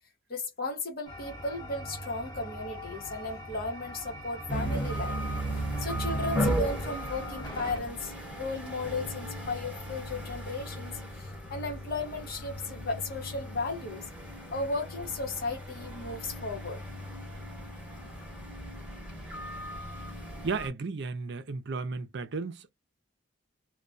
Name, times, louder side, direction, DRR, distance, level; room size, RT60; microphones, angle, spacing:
voice 1, 0.3-5.2 5.5-14.0 14.5-16.8, left 2 dB, 55° left, 1.0 m, -35 dB
sound 1, 1.1-7.8, left 1 dB, 25° left, 0.9 m, -43 dB
sound 2, 4.5-20.7, right 1 dB, 5° right, 1.0 m, -36 dB
voice 2, 20.4-22.7, right 4 dB, 65° right, 0.5 m, -34 dB
2.2 x 2.2 x 2.5 m
head